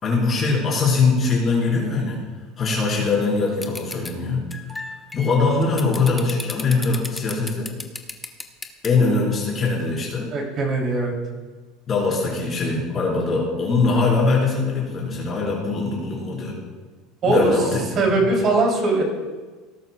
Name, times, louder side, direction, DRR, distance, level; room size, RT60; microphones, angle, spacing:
voice 1, 0.0-2.2 2.6-4.5 5.1-7.7 8.8-10.3 11.9-16.6 17.2-17.8 18.1-18.2, left 3 dB, 25° left, -4 dB, 4.2 m, -22 dB
sound 1, 3.6-4.1 4.5-8.9, left 2 dB, 10° left, 0.7 m, -33 dB
voice 2, 10.3-11.1 17.2-19.0, right 2 dB, 30° right, 0 dB, 2.9 m, -20 dB
18.0 x 11.5 x 2.3 m, 1.3 s
cardioid pair, 170°, 0 cm